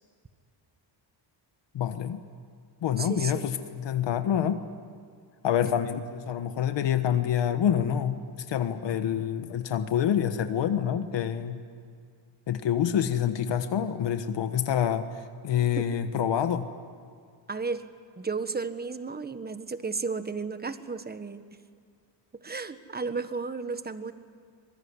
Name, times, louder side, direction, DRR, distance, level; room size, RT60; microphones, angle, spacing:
voice 1, 1.7-2.2 2.8-4.6 5.4-11.6 12.5-15.1 15.4-16.7, left 9 dB, 65° left, 9 dB, 1.4 m, -27 dB
voice 2, 3.0-3.5 15.8-15.9 17.5-17.8 18.2-21.4 22.3-24.1, right 4 dB, 20° right, 11 dB, 1.4 m, -33 dB
25.0 x 21.5 x 9.7 m, 2.2 s
cardioid pair, 110°, 47 cm